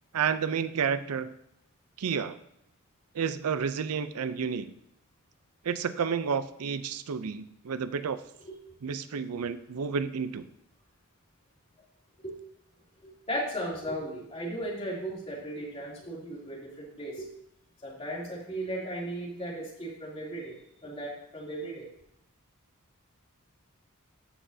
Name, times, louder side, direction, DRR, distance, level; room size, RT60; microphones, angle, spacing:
voice 1, 0.1-1.3 2.0-2.4 3.1-4.7 5.6-8.2 8.8-10.4, right 6 dB, 85° right, 13 dB, 0.5 m, -30 dB
voice 2, 13.0-17.3 17.8-20.6 20.8-21.9, right 1 dB, 25° left, -4 dB, 2.8 m, -36 dB
14.0 x 6.1 x 2.7 m, 0.74 s
head